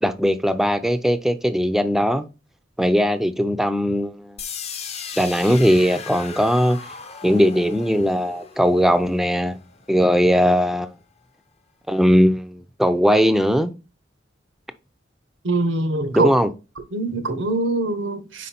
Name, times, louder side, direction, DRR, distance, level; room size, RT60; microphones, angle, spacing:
voice 1, 0.0-2.3 2.8-4.4 5.2-6.8 7.2-9.6 9.9-10.9 11.9-13.7 16.1-16.5, equal, ahead, 0.4 m, -19 dB
sound 1, 4.4-10.3, left 6 dB, 35° left, 0.7 m, -37 dB
voice 2, 15.4-16.3 16.9-18.5, right 2 dB, 90° right, 1.1 m, -23 dB
5.2 x 4.5 x 4.3 m
head